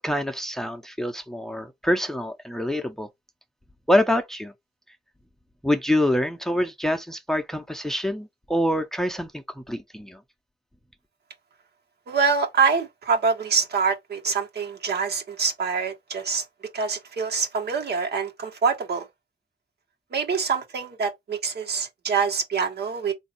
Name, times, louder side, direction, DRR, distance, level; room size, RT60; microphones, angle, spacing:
voice 1, 0.0-3.1 3.9-4.5 5.6-10.2, left 1 dB, ahead, 0.7 m, -25 dB
voice 2, 12.1-16.4 16.7-19.0 20.1-23.1, right 5 dB, 65° right, 1.3 m, -25 dB
4.0 x 2.6 x 4.2 m
cardioid pair, 80°, 18 cm